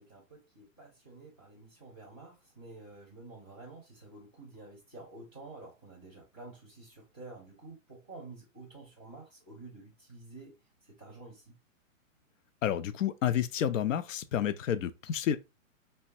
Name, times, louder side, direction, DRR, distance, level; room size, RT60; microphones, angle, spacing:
voice 1, 0.0-10.5 10.8-11.6, right 2 dB, 15° left, 0.4 m, -50 dB
voice 2, 12.6-15.4, left 9 dB, 70° left, 0.5 m, -30 dB
3.2 x 2.2 x 2.6 m
hypercardioid pair, 175°, 41 cm